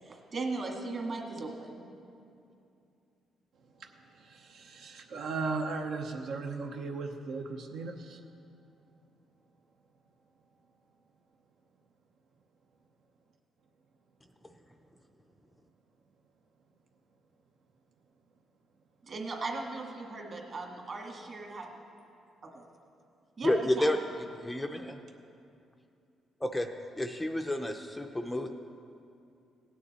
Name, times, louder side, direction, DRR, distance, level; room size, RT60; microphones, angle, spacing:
voice 1, 0.0-1.8 19.0-21.8 22.4-22.6 23.4-23.9, right 3 dB, 40° right, 1 dB, 1.7 m, -38 dB
voice 2, 3.8-8.2, right 4 dB, 75° right, 3 dB, 0.9 m, -37 dB
voice 3, 23.4-24.0 24.4-25.0 26.4-26.7 27.0-28.5, left 1 dB, 5° left, 5 dB, 0.5 m, -30 dB
17.5 x 9.5 x 4.2 m, 2.6 s
cardioid pair, 145°, 0 cm